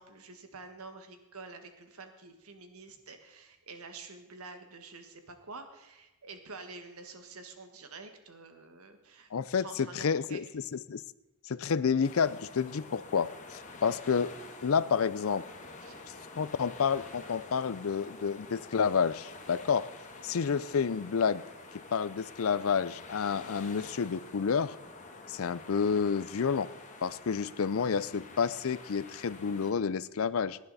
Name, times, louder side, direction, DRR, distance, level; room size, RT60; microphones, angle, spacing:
voice 1, 0.0-10.6 15.8-16.0 20.2-20.4, right 3 dB, 75° right, 7 dB, 1.6 m, -48 dB
voice 2, 9.3-9.7 10.0-10.4 10.9-11.0 11.5-14.3 14.6-15.4 16.3-19.9 20.2-21.4 21.9-24.8 25.3-26.7 27.0-30.6, left 6 dB, 65° left, 17 dB, 0.5 m, -29 dB
sound 1, 12.0-29.7, left 3 dB, 35° left, 1.4 m, -48 dB
18.0 x 10.5 x 4.1 m, 1.0 s
head